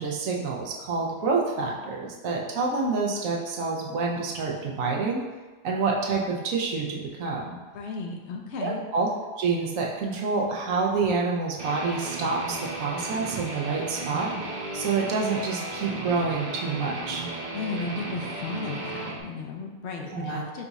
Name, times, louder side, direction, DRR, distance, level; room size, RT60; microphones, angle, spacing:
voice 1, 0.0-5.2 5.6-7.6 8.6-9.1 9.4-14.3 14.7-17.2 20.1-20.4, right 4 dB, 90° right, -2 dB, 1.1 m, -27 dB
voice 2, 7.7-8.8 17.5-20.7, left 4 dB, 65° left, 1 dB, 0.8 m, -34 dB
Guitar, 11.6-19.2, right 2 dB, 45° right, 0.6 m, -35 dB
5.0 x 2.4 x 4.0 m, 1.3 s
omnidirectional pair, 1.4 m